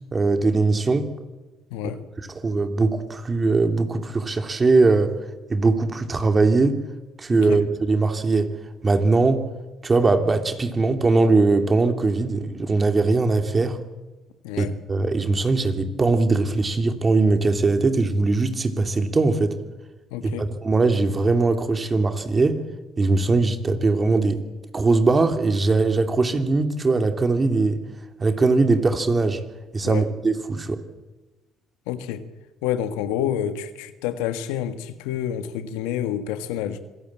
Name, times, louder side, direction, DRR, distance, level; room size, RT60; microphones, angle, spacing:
voice 1, 0.1-1.1 2.4-5.1 5.5-6.8 7.2-8.5 8.8-9.4 9.8-13.8 14.6-19.6 20.2-22.6 23.0-24.4 24.7-27.8 28.2-29.4 29.7-30.8, right 3 dB, 30° right, 7 dB, 2.8 m, -20 dB
voice 2, 1.7-2.0 7.5-7.6 14.4-14.7 20.1-20.5 29.8-30.1 31.9-32.2 32.6-36.8, left 10 dB, 85° left, 10 dB, 1.5 m, -28 dB
26.5 x 16.5 x 8.8 m, 1.2 s
hypercardioid pair, 65°, 0 cm